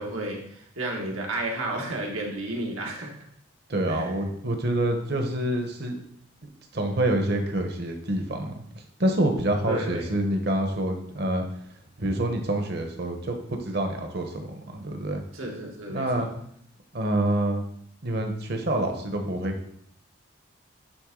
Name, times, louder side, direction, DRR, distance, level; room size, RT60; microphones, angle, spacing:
voice 1, 0.0-3.2 3.9-4.1 9.7-10.1 15.3-16.3, right 1 dB, 90° right, -1 dB, 1.6 m, -32 dB
voice 2, 3.7-6.0 6.7-8.6 9.0-11.4 12.0-15.2 15.9-16.3 16.9-17.6 18.0-19.5, right 1 dB, 50° right, 4 dB, 1.0 m, -27 dB
9.2 x 3.6 x 3.8 m, 0.66 s
head